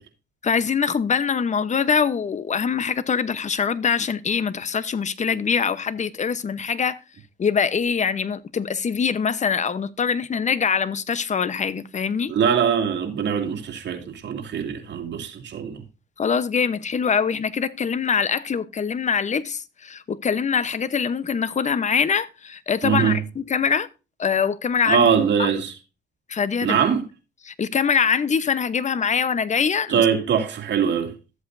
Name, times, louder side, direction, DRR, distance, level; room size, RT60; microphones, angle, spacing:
voice 1, 0.4-7.0 7.4-12.3 16.2-23.9 24.2-25.1 25.4-25.5 26.3-26.8 27.5-30.0, left 6 dB, 35° left, 0.9 m, -23 dB
voice 2, 12.3-15.8 22.8-23.2 24.9-25.7 26.6-27.0 29.9-31.1, right 7 dB, 65° right, 2.6 m, -22 dB
13.5 x 8.0 x 2.6 m
cardioid pair, 90°, 20 cm